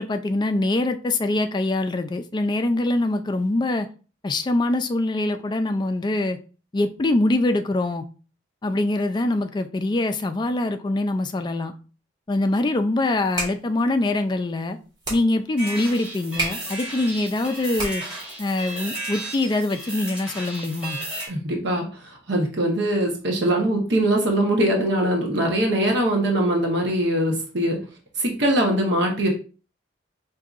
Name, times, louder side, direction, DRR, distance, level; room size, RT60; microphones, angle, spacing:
voice 1, 0.0-3.9 4.2-6.4 6.7-8.0 8.6-11.7 12.3-14.8 15.1-18.0 18.4-21.0, left 2 dB, 25° left, 7 dB, 0.3 m, -24 dB
sound 1, 13.1-18.3, right 2 dB, 25° right, 1.5 m, -34 dB
sound 2, 15.6-21.3, right 1 dB, 5° right, 1.9 m, -34 dB
voice 2, 21.3-21.8 22.3-27.8 28.2-29.3, right 1 dB, 65° right, 1 dB, 0.9 m, -22 dB
4.8 x 2.6 x 2.4 m, 0.36 s
head